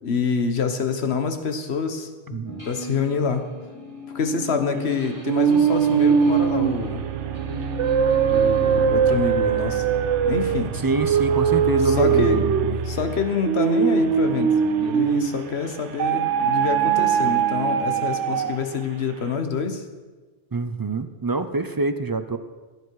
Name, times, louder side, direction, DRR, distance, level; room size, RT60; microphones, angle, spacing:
voice 1, 0.0-2.4 2.6-3.5 4.1-7.1 8.3-9.8 10.2-10.7 11.9-12.4 12.9-19.8, left 5 dB, 65° left, 7 dB, 1.4 m, -26 dB
voice 2, 2.3-2.6 10.8-12.8 20.5-22.4, right 3 dB, 35° right, 10 dB, 0.3 m, -26 dB
sound 1, 2.4-13.1 13.3-18.5, left 1 dB, 20° left, 3.0 m, -38 dB
sound 2, 5.3-15.5 16.0-18.7, right 7 dB, 80° right, 1.1 m, -21 dB
15.5 x 9.9 x 4.8 m, 1.3 s
omnidirectional pair, 1.2 m